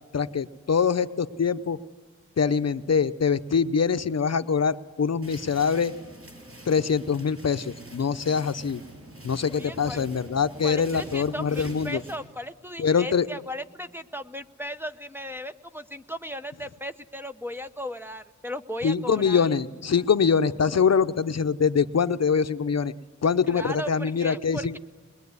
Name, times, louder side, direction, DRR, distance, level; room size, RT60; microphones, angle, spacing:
voice 1, 0.1-1.8 2.4-5.9 6.7-8.8 9.2-12.0 12.8-13.3 18.8-22.9 23.2-24.8, left 6 dB, 55° left, 11 dB, 0.7 m, -24 dB
sound 1, 5.2-12.2, right 1 dB, 45° right, 6.9 m, -45 dB
voice 2, 9.5-10.1 10.6-19.5 23.5-24.8, equal, 5° right, 9 dB, 0.8 m, -36 dB
22.0 x 21.5 x 9.6 m, 1.4 s
wide cardioid pair, 110°, 31 cm